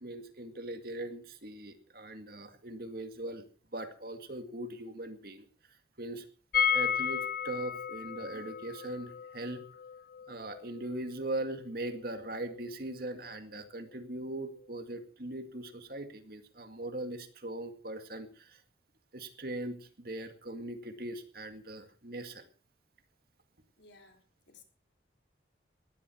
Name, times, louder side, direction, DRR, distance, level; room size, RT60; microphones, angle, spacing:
voice 1, 0.0-3.5 3.7-5.5 6.0-6.3 6.7-9.6 10.3-18.6 19.1-22.4, right 1 dB, 55° right, 7 dB, 2.2 m, -40 dB
sound 1, 6.5-12.3 12.6-12.7 12.9-13.0, left 7 dB, 50° left, 0.8 m, -34 dB
voice 2, 23.8-24.6, left 4 dB, 70° left, 4 dB, 3.8 m, -58 dB
19.0 x 13.5 x 4.6 m, 0.41 s
head